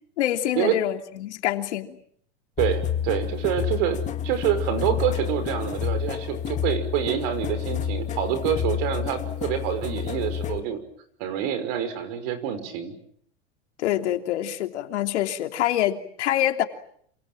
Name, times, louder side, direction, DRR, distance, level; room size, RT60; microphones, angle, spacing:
voice 1, 0.2-2.0 13.8-16.6, left 13 dB, 80° left, 5 dB, 3.2 m, -26 dB
sound 1, 2.6-10.6, left 9 dB, 20° left, 2.0 m, -29 dB
voice 2, 2.6-4.0 4.2-10.8 11.2-12.9, right 10 dB, 55° right, 11 dB, 5.9 m, -27 dB
27.5 x 26.0 x 7.8 m, 0.66 s
supercardioid pair, 155°, 34 cm